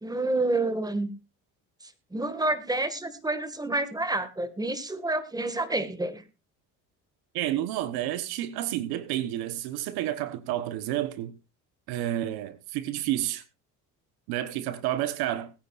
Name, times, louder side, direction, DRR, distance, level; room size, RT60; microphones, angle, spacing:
voice 1, 0.0-1.1 1.8-6.2, right 2 dB, 10° right, 1.9 m, -29 dB
voice 2, 7.3-11.3 11.9-13.4 14.3-15.5, right 13 dB, 80° right, 1.2 m, -30 dB
20.5 x 9.5 x 2.5 m
supercardioid pair, 90°, 37 cm